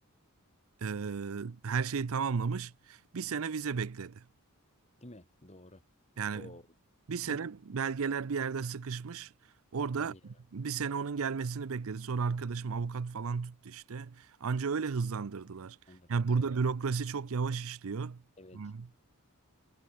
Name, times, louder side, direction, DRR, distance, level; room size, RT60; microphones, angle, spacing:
voice 1, 0.8-4.2 6.2-6.5 7.1-9.3 9.7-15.8 16.1-18.2 18.5-18.9, right 5 dB, 65° right, 0.5 m, -34 dB
voice 2, 5.0-5.8 6.3-6.6 7.2-7.5 9.9-10.2 15.9-16.5 18.4-18.6, left 1 dB, 30° left, 3.3 m, -51 dB
head